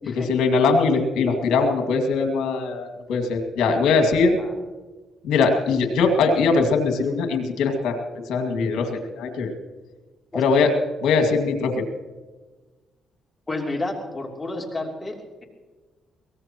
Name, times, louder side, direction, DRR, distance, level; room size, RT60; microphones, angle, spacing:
voice 1, 0.1-4.4 5.2-8.0 8.3-9.5 10.3-10.7 11.0-11.8, left 4 dB, 85° left, 5 dB, 2.2 m, -21 dB
voice 2, 13.5-15.4, left 2 dB, 20° left, 1 dB, 3.1 m, -31 dB
23.0 x 18.0 x 3.0 m, 1.3 s
cardioid pair, 90°, 0 cm